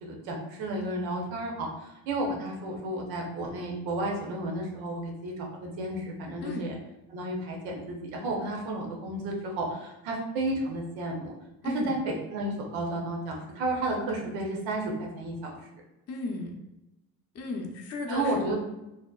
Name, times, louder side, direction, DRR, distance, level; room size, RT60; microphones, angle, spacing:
voice 1, 0.0-6.8 7.1-11.3 11.6-15.6 18.1-18.6, right 1 dB, 80° right, -1 dB, 0.8 m, -32 dB
voice 2, 11.6-11.9 16.1-16.6 17.3-18.5, left 2 dB, 35° left, 1 dB, 0.6 m, -34 dB
2.7 x 2.1 x 2.3 m, 0.93 s
supercardioid pair, 65°, 45 cm